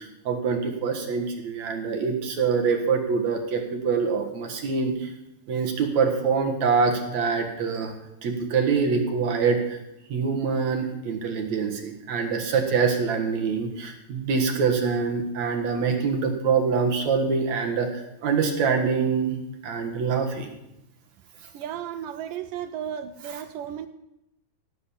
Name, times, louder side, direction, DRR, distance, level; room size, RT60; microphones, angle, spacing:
voice 1, 0.0-5.1 5.5-7.9 8.2-9.8 10.1-19.4 19.6-20.5, right 5 dB, 55° right, 3 dB, 2.6 m, -25 dB
voice 2, 21.5-23.9, right 9 dB, 75° right, 10 dB, 2.1 m, -34 dB
17.5 x 7.7 x 7.1 m, 0.84 s
omnidirectional pair, 4.2 m